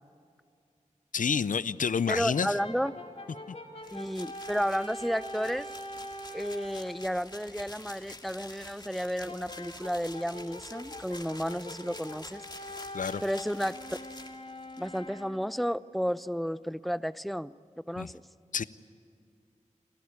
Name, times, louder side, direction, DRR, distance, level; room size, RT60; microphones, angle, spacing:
voice 1, 1.1-2.6 12.9-13.2 18.0-18.1 18.5-18.6, left 6 dB, 85° left, 17 dB, 0.5 m, -28 dB
voice 2, 2.1-2.9 3.9-5.7 6.3-12.4 13.2-14.0 14.8-17.5 17.9-18.2, equal, ahead, 17 dB, 0.5 m, -32 dB
Brass instrument, 2.3-6.9 9.3-15.6, left 1 dB, 55° left, 2.8 m, -44 dB
sound 1, 3.8-15.0, left 2 dB, 35° left, 2.2 m, -48 dB
30.0 x 13.0 x 9.6 m, 2.3 s
wide cardioid pair, 50°, 13 cm